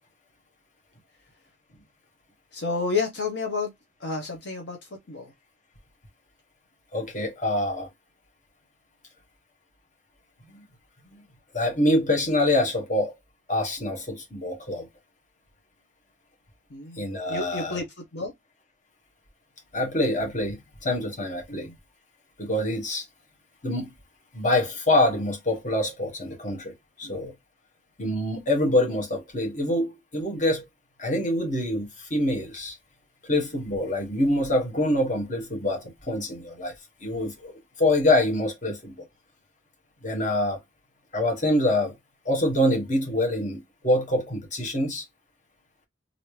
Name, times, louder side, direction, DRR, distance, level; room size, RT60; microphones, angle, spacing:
voice 1, 2.5-3.7 4.0-4.8 5.1-5.3 16.7-17.9 18.1-18.3 21.5-21.7 27.0-27.2, left 4 dB, 65° left, 0.8 m, -30 dB
voice 2, 6.9-7.9 11.5-13.1 13.5-14.9 17.0-17.8 19.7-21.7 22.4-23.0 23.6-23.9 24.3-27.3 28.0-30.6 31.0-32.7 33.3-36.7 37.0-37.5 37.8-39.0 40.0-40.6 41.1-41.9 42.2-45.0, left 1 dB, 40° left, 1.2 m, -25 dB
3.1 x 2.6 x 3.0 m
head